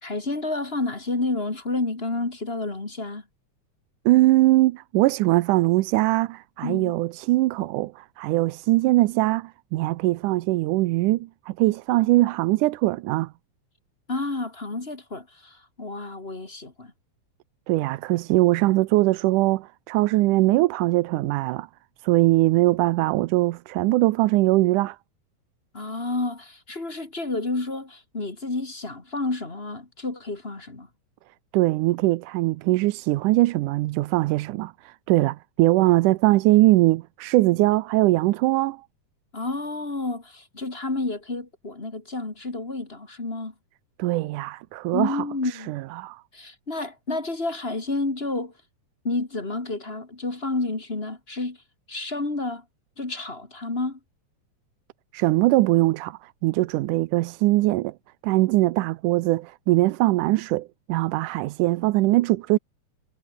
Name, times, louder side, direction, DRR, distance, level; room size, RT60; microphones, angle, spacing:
voice 1, 0.0-3.2 6.6-6.9 14.1-16.9 25.7-30.9 39.3-43.5 44.9-45.8 46.3-48.5 49.0-51.6 51.9-52.6 53.0-54.0, left 2 dB, 20° left, 2.4 m, -30 dB
voice 2, 4.1-13.3 17.7-21.7 22.0-25.0 31.5-38.8 44.0-46.2 55.1-57.9 58.2-62.6, right 18 dB, 85° right, 2.2 m, -21 dB
omnidirectional pair, 3.6 m